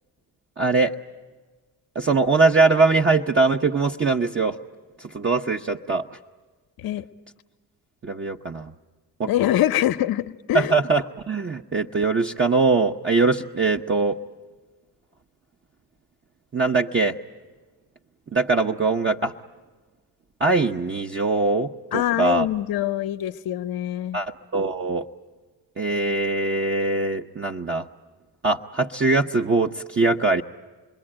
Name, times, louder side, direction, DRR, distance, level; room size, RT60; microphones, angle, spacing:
voice 1, 0.6-0.9 1.9-4.6 5.0-6.1 8.0-8.7 9.2-9.3 10.5-14.2 16.5-17.2 18.3-19.3 20.4-22.5 24.1-25.1 25.8-27.9 28.4-30.4, right 3 dB, 30° right, 2 dB, 0.8 m, -22 dB
voice 2, 9.3-10.8 21.9-24.2, left 12 dB, 70° left, 10 dB, 0.8 m, -24 dB
28.0 x 21.5 x 8.8 m, 1.4 s
supercardioid pair, 65°, 38 cm